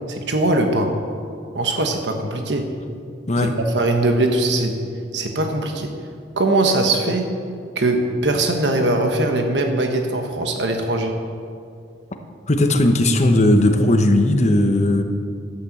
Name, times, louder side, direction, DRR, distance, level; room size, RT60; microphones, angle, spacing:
voice 1, 0.1-0.9 1.5-2.7 3.7-4.8 5.1-5.9 6.4-7.3 7.7-11.2, right 2 dB, 75° right, 4 dB, 1.2 m, -21 dB
voice 2, 12.5-15.0, left 1 dB, 40° left, 5 dB, 1.0 m, -16 dB
11.5 x 8.8 x 7.8 m, 2.3 s
head